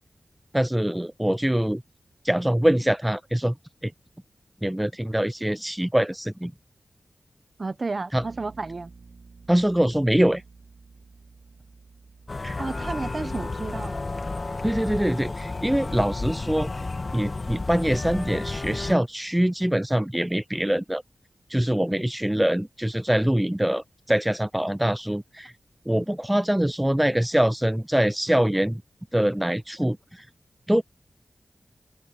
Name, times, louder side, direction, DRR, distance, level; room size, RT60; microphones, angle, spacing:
voice 1, 0.5-1.8 2.2-3.5 3.8-3.9 4.6-6.5 8.1-8.2 9.5-10.4 12.4-12.6 14.6-16.7 17.1-21.0 21.5-25.5 25.9-28.8 29.1-30.2 30.7-30.8, right 1 dB, 5° right, 0.4 m, -24 dB
voice 2, 7.6-8.9 12.6-14.0, right 3 dB, 40° right, 1.1 m, -32 dB
Bass guitar, 8.2-18.0, right 4 dB, 65° right, 5.2 m, -53 dB
sound 1, 12.3-18.9, left 3 dB, 40° left, 1.3 m, -32 dB
wide cardioid pair, 115°, 0 cm